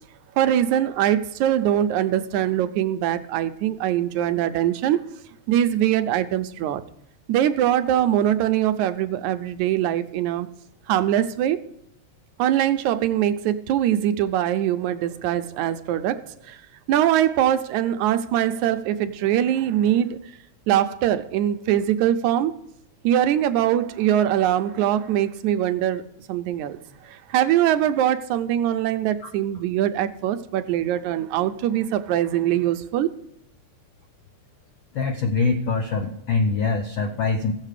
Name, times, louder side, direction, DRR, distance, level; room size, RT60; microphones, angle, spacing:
voice 1, 0.4-5.0 5.5-6.8 7.3-10.5 10.9-11.6 12.4-16.2 16.5-16.6 16.9-20.2 20.7-22.6 23.0-26.8 27.1-33.1, right 11 dB, 80° right, 10 dB, 2.0 m, -22 dB
voice 2, 34.9-37.5, left 4 dB, 75° left, 4 dB, 1.1 m, -23 dB
15.5 x 7.5 x 4.9 m, 0.76 s
omnidirectional pair, 3.4 m